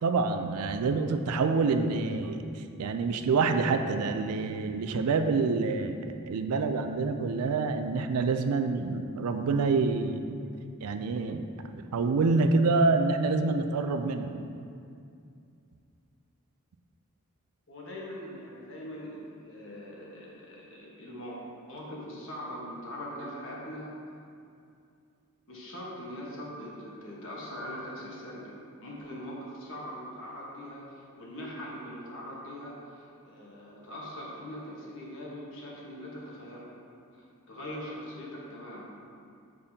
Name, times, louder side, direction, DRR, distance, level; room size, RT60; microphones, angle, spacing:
voice 1, 0.0-10.3 10.8-14.3, right 4 dB, 85° right, 7 dB, 0.4 m, -27 dB
voice 2, 17.7-21.4 21.7-23.9 25.5-28.5 28.8-36.7 37.1-38.8, equal, 60° left, -4 dB, 1.3 m, -41 dB
6.8 x 5.2 x 2.8 m, 2.4 s
head